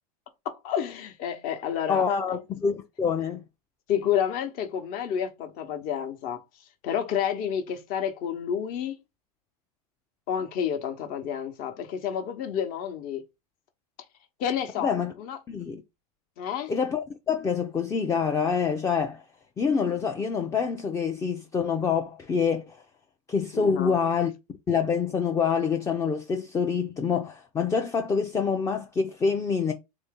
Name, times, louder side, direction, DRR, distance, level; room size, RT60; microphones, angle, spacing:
voice 1, 0.4-2.4 3.9-6.4 6.8-9.0 10.3-13.2 14.4-15.4 16.4-16.7 23.5-24.0, left 8 dB, 45° left, 0.9 m, -30 dB
voice 2, 1.9-3.4 14.8-15.1 15.5-15.8 16.7-19.2 19.6-22.8 23.3-24.3 24.7-29.7, left 6 dB, 15° left, 0.4 m, -26 dB
3.7 x 2.6 x 3.6 m
hypercardioid pair, 115°, 20 cm